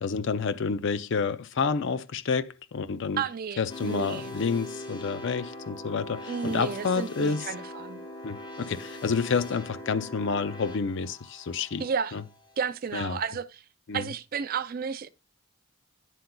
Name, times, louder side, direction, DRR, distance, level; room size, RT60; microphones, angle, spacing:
voice 1, 0.0-3.2 3.6-7.5 8.2-11.8 12.1-12.2 12.9-13.2 13.9-14.1, left 5 dB, 55° left, 0.4 m, -29 dB
voice 2, 3.2-4.3 6.3-8.0 11.8-12.2 12.6-13.6 13.9-15.1, right 6 dB, 40° right, 0.4 m, -32 dB
sound 1, 3.7-12.7, left 1 dB, 20° left, 0.8 m, -42 dB
10.0 x 7.7 x 2.2 m
head